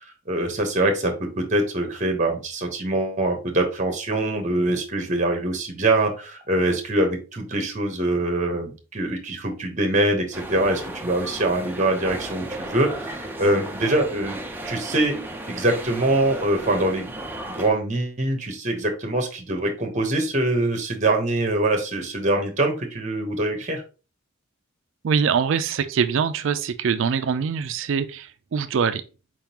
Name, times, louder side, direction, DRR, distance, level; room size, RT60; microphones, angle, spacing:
voice 1, 0.3-14.4 14.6-15.2 15.5-17.1 17.5-23.8, right 1 dB, 35° right, 1.0 m, -24 dB
sound 1, 10.3-17.7, right 1 dB, 10° right, 0.6 m, -35 dB
voice 2, 25.0-29.0, right 6 dB, 65° right, 0.4 m, -23 dB
4.6 x 3.7 x 2.9 m
head